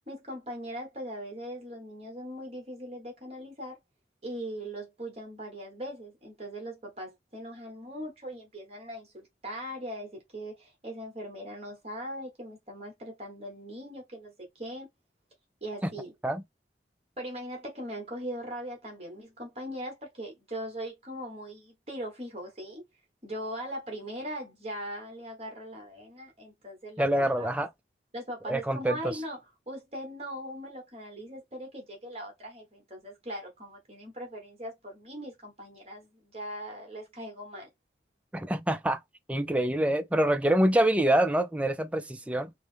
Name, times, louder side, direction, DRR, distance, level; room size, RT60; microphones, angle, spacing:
voice 1, 0.1-3.8 4.2-14.9 15.6-16.1 17.2-22.8 23.2-27.1 27.3-27.6 28.1-29.4 29.7-37.7, equal, 35° right, 1.3 m, -40 dB
voice 2, 27.0-27.7 28.5-29.2 38.3-39.0 39.3-42.5, right 1 dB, 10° right, 0.3 m, -26 dB
5.0 x 2.1 x 3.3 m
head